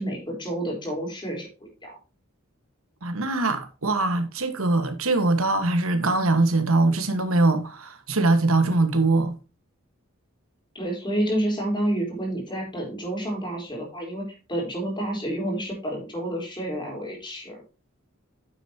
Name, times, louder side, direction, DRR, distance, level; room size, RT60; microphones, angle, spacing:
voice 1, 0.0-2.0 10.7-14.2 14.5-17.6, right 1 dB, 25° left, 4.0 m, -29 dB
voice 2, 3.0-9.3, right 2 dB, 75° right, 1.5 m, -22 dB
9.2 x 7.9 x 2.8 m
head